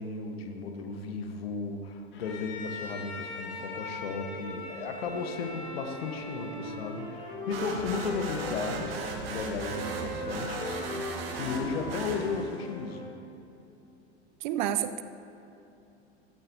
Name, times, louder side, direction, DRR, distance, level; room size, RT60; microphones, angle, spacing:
voice 1, 0.0-13.1, left 4 dB, 60° left, 5 dB, 1.4 m, -35 dB
Bowed string instrument, 2.1-7.4, left 2 dB, 35° left, 2.6 m, -41 dB
Wind instrument woodwind instrument, 5.0-8.9 9.6-13.1, left 1 dB, 15° left, 2.7 m, -40 dB
sound 1, 7.5-12.7, right 3 dB, 60° right, 1.9 m, -37 dB
voice 2, 14.4-15.0, right 11 dB, 45° right, 12 dB, 0.6 m, -29 dB
15.5 x 14.0 x 2.8 m, 2.9 s
figure-of-eight pair, 85°, 34 cm